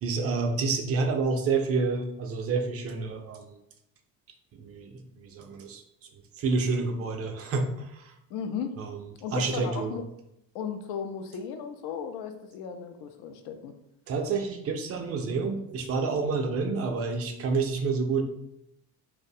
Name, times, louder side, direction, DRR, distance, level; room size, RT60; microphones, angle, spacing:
voice 1, 0.0-3.5 4.5-5.8 6.4-8.1 8.8-9.0 9.3-10.0 14.1-18.2, right 4 dB, 35° right, 4 dB, 0.4 m, -29 dB
voice 2, 8.3-8.8 9.2-10.0 10.5-13.7, left 7 dB, 65° left, 7 dB, 0.5 m, -35 dB
2.4 x 2.0 x 2.6 m, 0.83 s
supercardioid pair, 85°, 41 cm